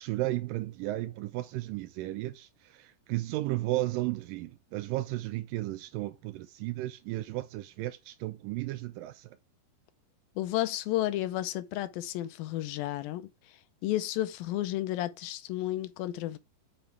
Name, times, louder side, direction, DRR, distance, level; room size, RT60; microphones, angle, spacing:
voice 1, 0.0-9.4, right 17 dB, 80° right, 2.0 m, -34 dB
voice 2, 10.4-13.3 13.8-16.4, left 14 dB, 80° left, 2.3 m, -32 dB
6.6 x 6.0 x 3.3 m
omnidirectional pair, 4.3 m